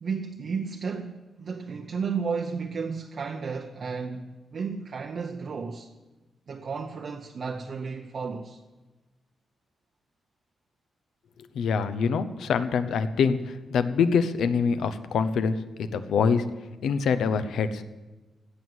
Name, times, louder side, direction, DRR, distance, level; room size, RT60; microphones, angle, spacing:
voice 1, 0.0-5.9 6.5-8.6, right 5 dB, 40° right, 0.7 m, -33 dB
voice 2, 11.5-13.4 13.7-15.5 15.9-16.4 16.8-17.8, left 6 dB, 80° left, 0.9 m, -24 dB
17.0 x 6.3 x 9.5 m
wide cardioid pair, 175°, 0 cm